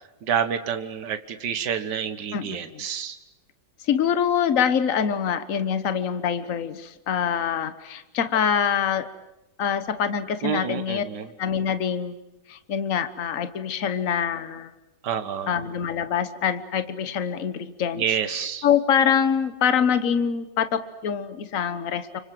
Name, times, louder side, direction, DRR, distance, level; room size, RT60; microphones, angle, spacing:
voice 1, 0.2-3.2 10.4-11.3 15.0-15.6 18.0-18.7, right 8 dB, 60° right, 9 dB, 2.0 m, -28 dB
voice 2, 2.3-2.8 3.9-9.1 9.6-11.0 11.4-12.1 12.5-14.7 15.5-18.0 18.3-22.2, left 8 dB, 45° left, 12 dB, 1.4 m, -25 dB
30.0 x 25.0 x 7.7 m, 0.97 s
omnidirectional pair, 2.1 m